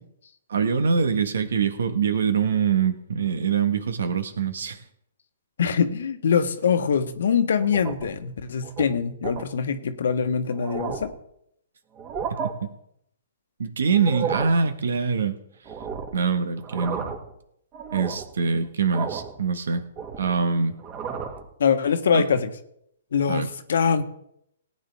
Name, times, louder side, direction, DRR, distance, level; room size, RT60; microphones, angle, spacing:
voice 1, 0.5-4.8 12.3-12.7 13.6-15.4 16.1-17.1 17.9-19.8 20.2-20.7 22.1-22.3 23.3-23.5, right 5 dB, 75° right, 9 dB, 1.5 m, -24 dB
voice 2, 5.6-11.1 21.6-22.5 23.1-24.0, left 6 dB, 70° left, 10 dB, 1.2 m, -23 dB
sound 1, 7.6-8.2 8.6-8.8 9.2-9.5 10.1-10.2 10.5-11.2 11.9-12.5 13.9-14.6 15.7-16.2 16.6-17.3 17.7-18.3 18.9-19.4 19.7-20.4 20.8-21.4, right 7 dB, 30° right, 2.3 m, -33 dB
18.0 x 9.4 x 3.6 m, 0.73 s
hypercardioid pair, 125°, 0 cm